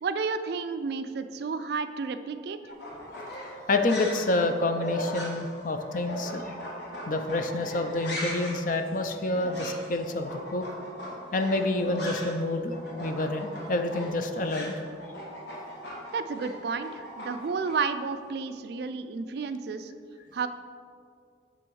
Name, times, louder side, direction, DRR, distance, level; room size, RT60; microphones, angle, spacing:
voice 1, 0.0-2.6 16.1-19.9 20.3-20.5, right 5 dB, 55° right, 10 dB, 0.3 m, -31 dB
sound 1, 2.7-12.5 12.7-17.7, equal, 65° left, 1.7 m, -38 dB
voice 2, 3.7-6.5 7.1-10.7 11.3-14.7, left 2 dB, 45° left, 6 dB, 0.4 m, -28 dB
6.9 x 6.1 x 4.6 m, 2.3 s
head